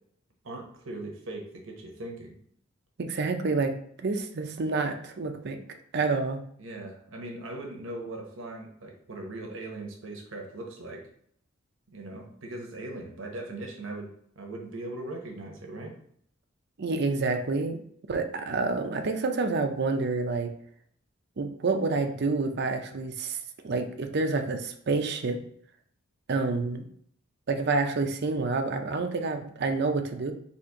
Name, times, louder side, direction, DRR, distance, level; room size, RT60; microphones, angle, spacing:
voice 1, 0.4-2.3 6.6-11.0 11.9-15.9, right 2 dB, 80° right, 1 dB, 1.0 m, -39 dB
voice 2, 3.0-5.6 5.9-6.4 16.8-17.8 18.1-20.5 21.4-23.4 23.6-25.4 26.3-26.8 27.5-30.3, right 3 dB, 60° right, 6 dB, 0.6 m, -28 dB
4.2 x 2.5 x 4.8 m, 0.64 s
head